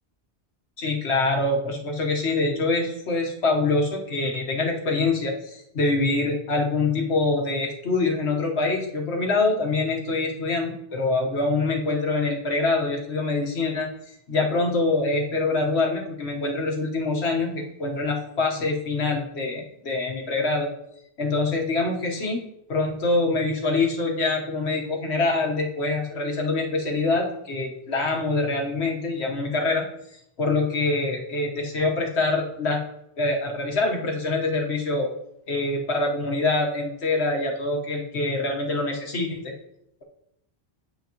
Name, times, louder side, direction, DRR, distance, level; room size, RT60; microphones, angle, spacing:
voice 1, 0.8-20.7 21.2-22.4 22.7-29.8 30.1-32.8 33.2-35.1 35.5-39.5, left 3 dB, 90° left, 1 dB, 1.5 m, -25 dB
8.1 x 6.0 x 3.0 m, 0.76 s
omnidirectional pair, 1.1 m